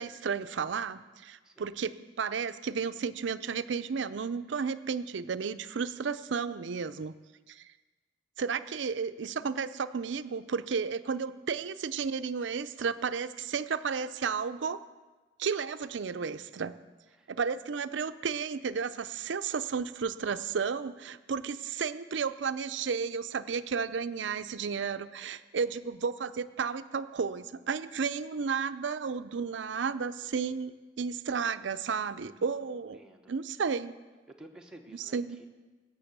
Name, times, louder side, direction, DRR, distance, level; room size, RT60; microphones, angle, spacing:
voice 1, 0.0-7.1 7.5-7.7 8.4-14.8 15.4-16.8 17.3-33.0 33.3-33.9 34.9-35.4, right 5 dB, 75° right, 12 dB, 0.5 m, -33 dB
voice 2, 32.9-33.3 34.3-35.5, right 1 dB, 5° right, 0 dB, 1.1 m, -52 dB
17.0 x 6.8 x 6.7 m, 1.3 s
head